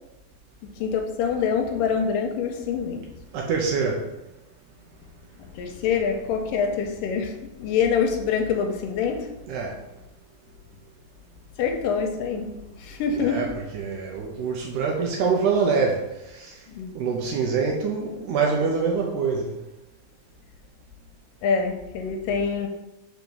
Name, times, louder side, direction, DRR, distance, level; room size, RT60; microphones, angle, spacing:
voice 1, 0.7-3.1 5.4-9.3 11.6-13.5 16.7-16.9 21.4-22.7, left 6 dB, 80° left, 4 dB, 2.2 m, -25 dB
voice 2, 3.3-4.1 9.5-9.8 13.1-16.6 16.9-19.6, right 5 dB, 75° right, 1 dB, 2.0 m, -25 dB
5.1 x 4.7 x 5.3 m, 0.96 s
omnidirectional pair, 4.1 m